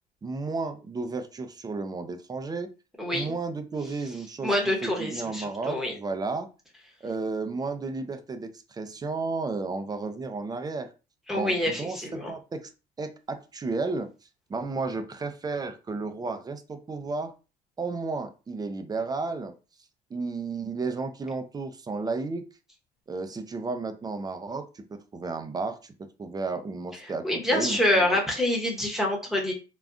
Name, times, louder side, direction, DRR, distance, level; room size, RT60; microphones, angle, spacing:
voice 1, 0.2-2.7 3.1-4.5 4.8-6.5 7.0-10.9 11.3-12.7 13.0-14.1 14.5-17.3 17.8-19.5 20.1-22.4 23.1-25.9 26.2-28.2, right 3 dB, 25° right, 8 dB, 0.5 m, -33 dB
voice 2, 4.4-5.9 11.3-12.3 27.0-29.5, left 1 dB, ahead, -1 dB, 0.9 m, -26 dB
3.5 x 2.3 x 2.5 m, 0.32 s
cardioid pair, 110°, 17 cm